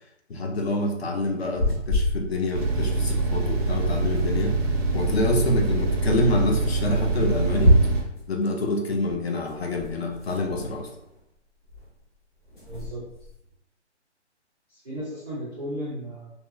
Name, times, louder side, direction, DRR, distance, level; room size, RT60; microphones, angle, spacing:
voice 1, 0.3-4.6 4.9-7.8 8.3-10.9, left 1 dB, 60° left, 2 dB, 0.6 m, -26 dB
sound 1, 1.4-2.8 3.0-3.1 3.3-3.4 3.6-4.7 5.7-5.8 6.1-6.2 6.9-8.3 9.0-11.4 11.6-12.0 12.4-13.5, equal, 40° left, 1.1 m, -27 dB
sound 2, 2.5-8.0, right 3 dB, 60° right, 0.5 m, -25 dB
voice 2, 12.7-13.1 14.7-16.3, equal, 5° right, -14 dB, 0.5 m, -35 dB
2.8 x 2.0 x 2.3 m, 0.78 s
hypercardioid pair, 160°, 35 cm